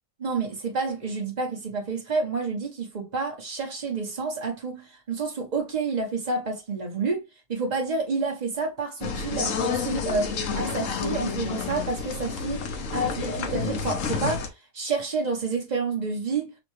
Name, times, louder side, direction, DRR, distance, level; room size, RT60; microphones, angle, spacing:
voice 1, 0.2-7.2 7.5-16.5, right 4 dB, 30° right, 0.9 m, -29 dB
sound 1, 9.0-14.5, left 5 dB, 60° left, 0.9 m, -30 dB
6.3 x 2.4 x 3.1 m
omnidirectional pair, 1.9 m